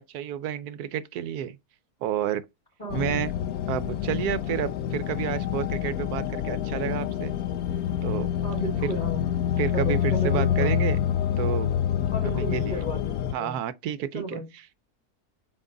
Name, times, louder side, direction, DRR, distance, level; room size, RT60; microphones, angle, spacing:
voice 1, 0.0-1.6 2.0-2.4 2.9-3.3 3.7-7.4 8.0-8.3 8.8-8.9 9.6-11.0 11.4-11.7 12.4-12.8 13.3-14.4, right 10 dB, 75° right, 1.2 m, -30 dB
voice 2, 2.8-3.1 8.4-9.3 9.7-10.7 12.1-13.6 14.1-14.5, equal, 30° left, 2.8 m, -34 dB
sound 1, 2.9-13.3, left 10 dB, 70° left, 1.1 m, -27 dB
7.6 x 4.0 x 3.8 m
omnidirectional pair, 1.7 m